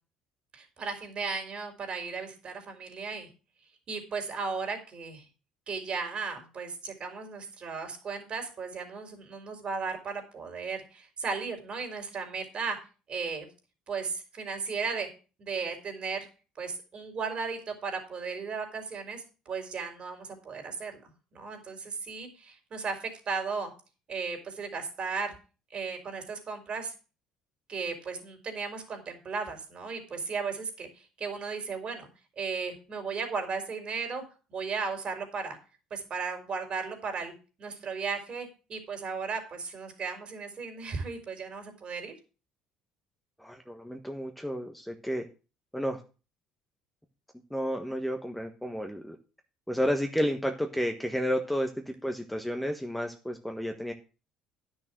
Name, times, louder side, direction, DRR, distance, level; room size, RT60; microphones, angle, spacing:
voice 1, 0.5-3.3 3.9-5.2 5.7-12.8 13.1-13.5 13.9-15.1 15.4-16.3 16.6-21.0 21.3-23.7 24.1-25.3 25.7-26.9 27.7-32.1 32.4-34.2 34.5-35.6 35.9-37.3 37.6-42.1, right 5 dB, 45° right, 4 dB, 4.1 m, -35 dB
voice 2, 43.4-45.3 45.7-46.0 47.5-49.2 49.7-53.9, equal, 5° left, 4 dB, 1.4 m, -31 dB
10.5 x 6.4 x 6.1 m, 0.34 s
supercardioid pair, 70°, 2 cm